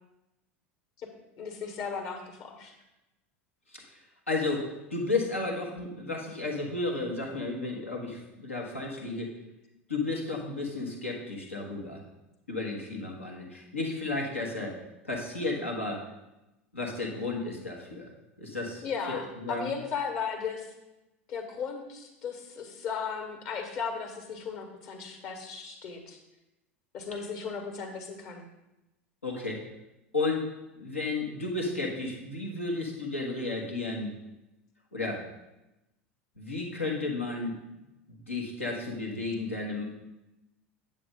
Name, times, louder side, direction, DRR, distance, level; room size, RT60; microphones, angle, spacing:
voice 1, 1.4-2.7 18.8-20.7 21.3-26.2 26.9-28.5, left 6 dB, 50° left, 4 dB, 1.7 m, -36 dB
voice 2, 3.7-4.0 4.3-9.3 9.9-12.0 12.5-16.0 16.7-18.1 18.4-19.7 27.1-27.3 29.2-29.6 30.1-34.1 34.9-35.2 36.4-37.6 38.1-39.8, left 3 dB, 85° left, -1 dB, 1.6 m, -33 dB
9.1 x 7.0 x 3.8 m, 0.96 s
figure-of-eight pair, 75°, 7 cm